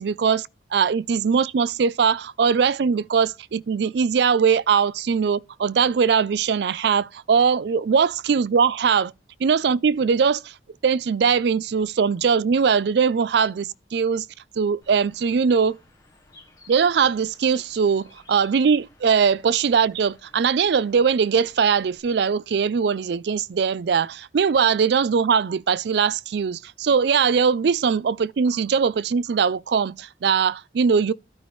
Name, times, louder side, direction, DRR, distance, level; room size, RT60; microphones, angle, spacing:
voice 1, 0.0-9.1 9.4-10.6 10.8-14.3 14.6-15.8 16.7-31.1, right 6 dB, 60° right, 0.4 m, -21 dB
Bird, 14.8-22.0, left 2 dB, 20° left, 1.9 m, -54 dB
12.5 x 5.3 x 3.1 m
head